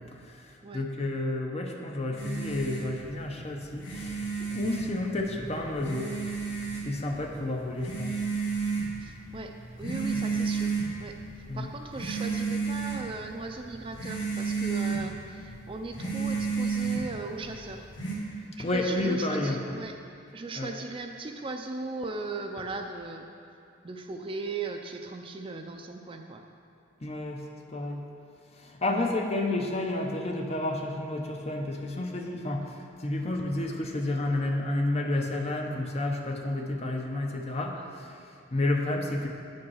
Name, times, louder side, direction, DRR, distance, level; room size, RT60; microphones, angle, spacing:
voice 1, 0.1-6.2 6.7-8.2 10.1-10.2 11.5-11.7 18.6-19.6 20.6-20.7 27.0-28.1 28.5-39.3, left 2 dB, 35° left, 1 dB, 0.7 m, -31 dB
sound 1, 2.2-18.1, right 4 dB, 70° left, 2.2 m, -33 dB
voice 2, 9.0-17.9 18.3-19.9 20.3-23.3 23.8-26.4 28.9-29.1 29.4-29.5, right 3 dB, 30° right, 4 dB, 0.4 m, -38 dB
8.8 x 5.3 x 5.6 m, 2.5 s
head